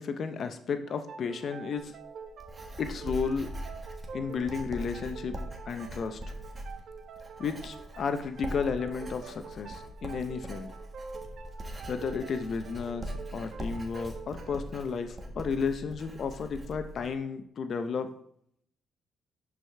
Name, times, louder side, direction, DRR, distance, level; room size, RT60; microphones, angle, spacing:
voice 1, 0.0-1.9 2.8-3.5 4.1-5.3 5.7-6.2 7.4-10.8 11.9-18.1, left 5 dB, 55° left, 8 dB, 0.6 m, -33 dB
sound 1, 0.9-16.2, right 5 dB, 65° right, 0.7 m, -47 dB
Writing, 1.8-17.1, right 1 dB, 25° right, 1.4 m, -42 dB
11.0 x 4.8 x 3.3 m, 0.68 s
cardioid pair, 90°, 0 cm